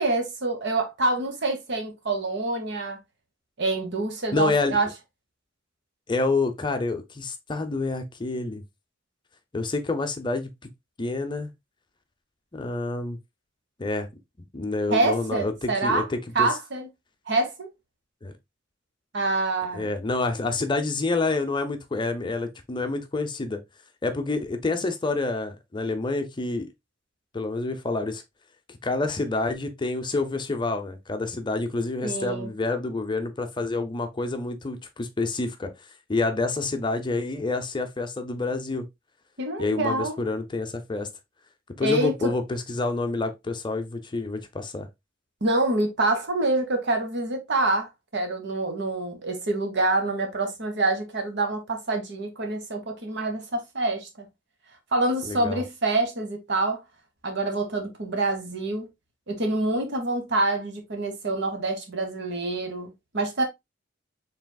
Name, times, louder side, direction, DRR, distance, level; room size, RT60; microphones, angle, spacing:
voice 1, 0.0-3.0 3.6-4.9 14.9-16.1 16.3-16.9 17.3-17.7 19.1-19.9 32.0-32.5 39.4-40.2 41.8-42.3 45.4-54.3 54.9-56.8 57.2-58.9 59.3-63.4, right 2 dB, 65° right, 1.1 m, -26 dB
voice 2, 4.3-4.8 6.1-8.6 9.5-10.5 11.0-11.5 12.5-13.2 13.8-14.1 14.5-16.5 18.2-18.3 19.7-23.6 24.0-26.7 27.3-28.2 28.7-35.7 36.1-38.8 39.6-41.1 41.8-44.9 55.2-55.6, left 3 dB, 25° left, 0.6 m, -28 dB
4.9 x 3.4 x 2.2 m
head